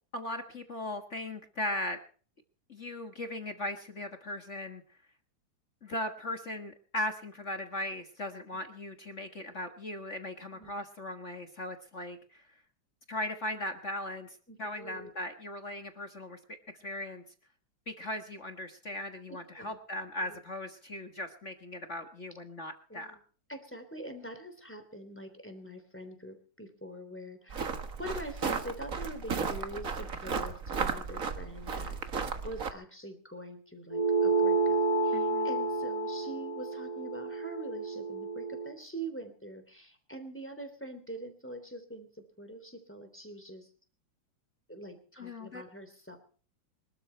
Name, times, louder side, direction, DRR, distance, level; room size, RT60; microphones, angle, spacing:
voice 1, 0.1-2.0 2.7-4.8 5.8-12.4 13.1-17.2 17.9-23.1 35.1-35.5 45.2-45.6, left 1 dB, 40° left, 6 dB, 1.1 m, -38 dB
voice 2, 14.5-15.1 19.3-19.8 20.2-20.4 22.9-23.2 23.5-32.2 32.4-43.7 44.7-46.2, right 1 dB, 5° left, 8 dB, 2.8 m, -44 dB
sound 1, 27.5-32.7, right 5 dB, 40° right, 1.3 m, -34 dB
sound 2, 33.9-38.7, right 3 dB, 65° left, 0.3 m, -30 dB
24.5 x 13.0 x 4.5 m, 0.43 s
omnidirectional pair, 3.4 m